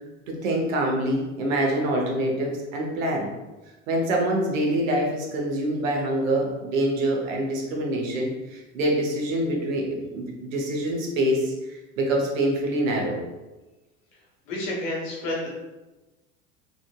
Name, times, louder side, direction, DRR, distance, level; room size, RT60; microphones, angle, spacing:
voice 1, 0.3-3.3 3.9-13.2, right 1 dB, 75° right, -1 dB, 0.8 m, -25 dB
voice 2, 14.5-15.5, left 1 dB, 75° left, -3 dB, 1.0 m, -29 dB
2.8 x 2.5 x 2.2 m, 1.1 s
hypercardioid pair, 75°, 40 cm